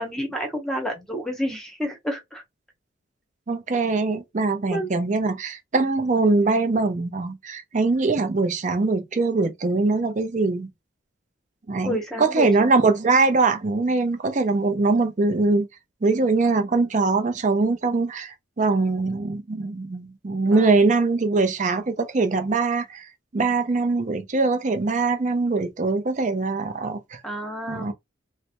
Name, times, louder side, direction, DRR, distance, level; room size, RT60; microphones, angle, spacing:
voice 1, 0.0-2.4 4.7-4.9 11.8-12.5 20.4-20.7 27.2-27.9, equal, 5° left, 0.9 m, -29 dB
voice 2, 3.5-10.7 11.7-15.7 16.0-23.1 23.3-27.2 27.7-27.9, right 3 dB, 40° right, 0.5 m, -22 dB
3.2 x 2.1 x 2.8 m
head